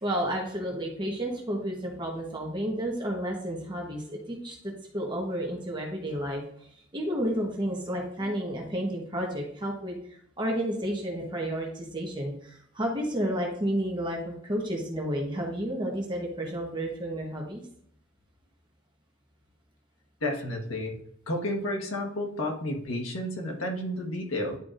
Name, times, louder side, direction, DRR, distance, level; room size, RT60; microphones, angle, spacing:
voice 1, 0.0-17.6, equal, 20° right, -1 dB, 1.1 m, -31 dB
voice 2, 20.2-20.9 21.3-24.6, left 1 dB, 85° left, 2 dB, 1.5 m, -31 dB
10.5 x 4.6 x 2.5 m, 0.68 s
head